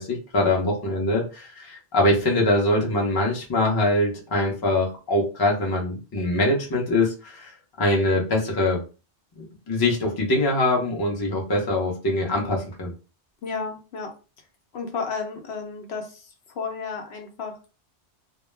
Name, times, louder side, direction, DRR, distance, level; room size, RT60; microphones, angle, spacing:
voice 1, 0.0-7.5 7.8-8.8 9.4-12.9, left 1 dB, 25° left, -1 dB, 0.6 m, -23 dB
voice 2, 13.4-14.1 14.7-17.7, left 5 dB, 70° left, 3 dB, 0.9 m, -33 dB
2.2 x 2.0 x 3.2 m, 0.33 s
omnidirectional pair, 1.2 m